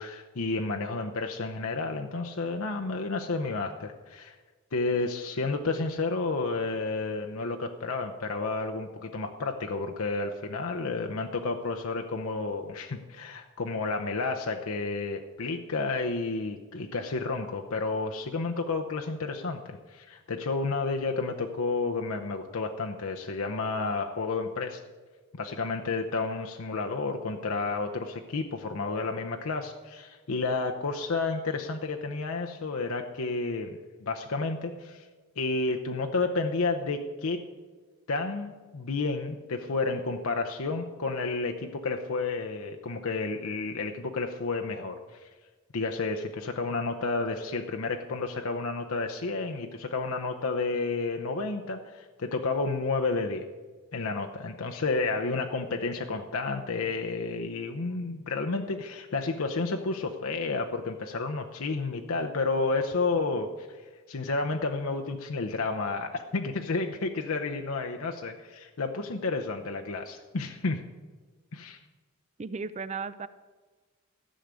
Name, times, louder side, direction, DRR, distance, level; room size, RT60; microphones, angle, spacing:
voice 1, 0.0-4.3 4.7-24.8 25.3-35.1 35.4-37.4 38.1-45.3 45.7-53.5 53.9-63.8 64.1-70.8 71.5-71.8, left 3 dB, 70° left, 3 dB, 0.8 m, -31 dB
voice 2, 72.4-73.3, right 4 dB, 30° right, 14 dB, 0.4 m, -35 dB
14.0 x 6.4 x 8.2 m, 1.4 s
head